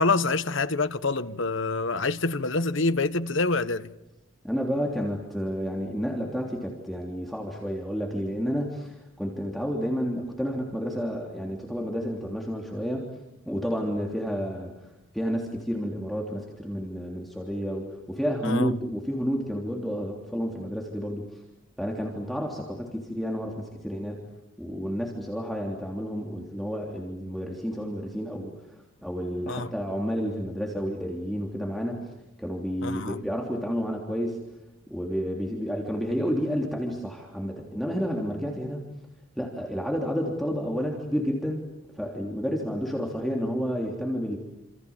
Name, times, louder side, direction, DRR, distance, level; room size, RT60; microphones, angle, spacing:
voice 1, 0.0-3.9 18.4-18.7 29.5-29.7 32.8-33.2, left 3 dB, 65° left, 1.2 m, -26 dB
voice 2, 4.4-13.1 13.4-14.7 15.1-21.2 21.8-24.2 24.6-28.5 29.0-32.1 32.4-34.4 34.9-38.8 39.4-41.6 42.0-44.4, equal, ahead, 3.3 m, -30 dB
28.5 x 27.5 x 7.4 m
head